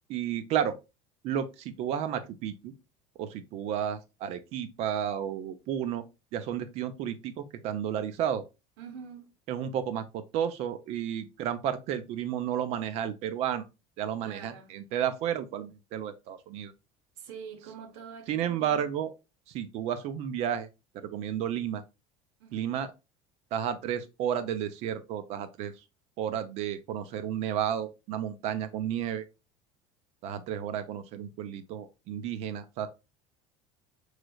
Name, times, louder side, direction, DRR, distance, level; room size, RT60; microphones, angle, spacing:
voice 1, 0.1-0.8 1.2-2.7 3.2-6.0 6.3-8.4 9.5-13.6 14.0-16.7 18.3-19.1 19.5-20.7 21.0-21.8 22.5-22.9 23.5-25.7 26.2-29.2 30.2-32.9, right 9 dB, 50° right, 0.5 m, -32 dB
voice 2, 8.8-9.3 14.2-14.7 17.2-18.9 22.4-22.6, right 7 dB, 80° right, 1.0 m, -45 dB
5.1 x 3.2 x 2.3 m
cardioid pair, 170°, 14 cm